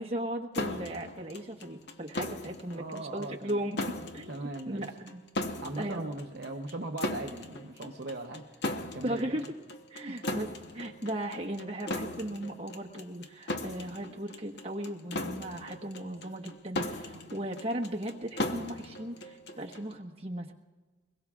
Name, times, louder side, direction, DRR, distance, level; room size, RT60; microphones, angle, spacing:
voice 1, 0.0-5.2 5.8-6.1 9.0-9.4 9.9-20.5, right 1 dB, 30° right, 1 dB, 1.3 m, -37 dB
sound 1, 0.5-19.9, left 2 dB, 55° left, 0.9 m, -38 dB
voice 2, 2.7-3.6 4.3-4.8 5.6-8.4 8.9-9.4 10.0-10.3, right 2 dB, 55° right, 3 dB, 0.8 m, -39 dB
24.0 x 21.5 x 2.4 m, 1.3 s
head